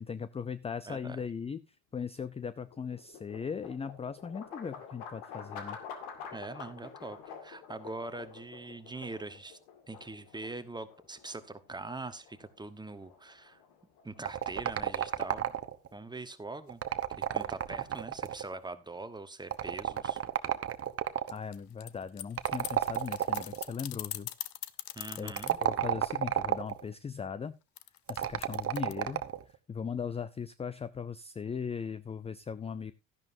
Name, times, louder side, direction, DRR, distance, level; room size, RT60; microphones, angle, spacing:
voice 1, 0.0-1.6 1.9-5.8 21.3-24.3 25.2-25.3 25.6-27.6 28.1-29.2 29.7-32.9, left 6 dB, 15° left, 16 dB, 0.4 m, -38 dB
voice 2, 0.9-1.2 6.3-9.6 9.9-13.6 14.0-15.5 15.9-16.8 17.2-20.2 24.9-25.6, right 2 dB, 10° right, 11 dB, 1.2 m, -43 dB
sound 1, 2.1-16.1, left 6 dB, 85° left, 2.1 m, -49 dB
sound 2, 14.3-15.9 16.7-18.5 19.5-21.3 22.4-23.7 25.3-26.8 28.1-29.4, right 10 dB, 35° right, 1.0 m, -31 dB
sound 3, 21.3-25.6 27.8-28.9, left 16 dB, 65° left, 0.8 m, -41 dB
12.5 x 10.5 x 2.7 m, 0.26 s
supercardioid pair, 85°, 38 cm